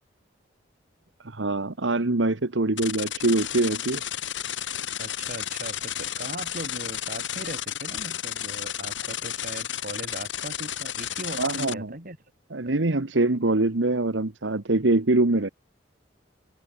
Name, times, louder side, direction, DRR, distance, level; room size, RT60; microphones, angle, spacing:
voice 1, 1.2-4.0 11.4-11.9 12.5-15.5, right 2 dB, 80° right, 1.3 m, -24 dB
sound 1, 2.8-11.7, left 10 dB, 85° left, 4.1 m, -32 dB
voice 2, 5.0-12.2, right 1 dB, 50° right, 6.5 m, -39 dB
head